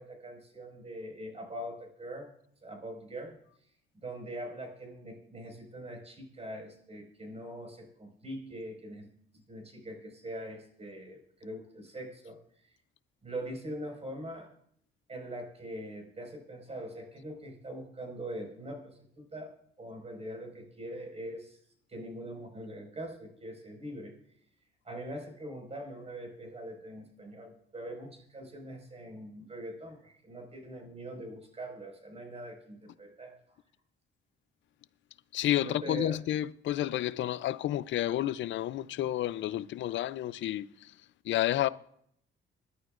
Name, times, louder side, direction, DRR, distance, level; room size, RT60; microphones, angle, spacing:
voice 1, 0.0-2.3 2.6-3.4 3.9-9.1 9.3-12.4 13.2-14.5 15.1-21.6 21.9-24.1 24.8-33.3 35.6-36.2, right 1 dB, 30° right, 5.2 m, -42 dB
voice 2, 35.3-40.7 41.3-41.7, left 13 dB, 70° left, 0.5 m, -30 dB
26.5 x 11.5 x 2.5 m
cardioid pair, 90°, 20 cm